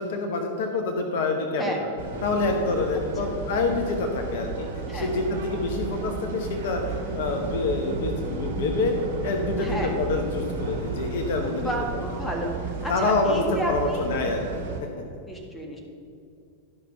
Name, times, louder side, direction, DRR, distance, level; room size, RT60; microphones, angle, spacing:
voice 1, 0.0-1.9 2.2-8.9 9.2-12.0 12.9-14.9, left 3 dB, 55° left, 3 dB, 1.0 m, -27 dB
sound 1, 2.0-14.8, right 4 dB, 55° right, 1.7 m, -33 dB
voice 2, 9.6-9.9 11.6-14.0 15.3-15.8, equal, 10° left, 0 dB, 1.6 m, -32 dB
12.0 x 5.9 x 5.6 m, 2.4 s
figure-of-eight pair, 90°, 0 cm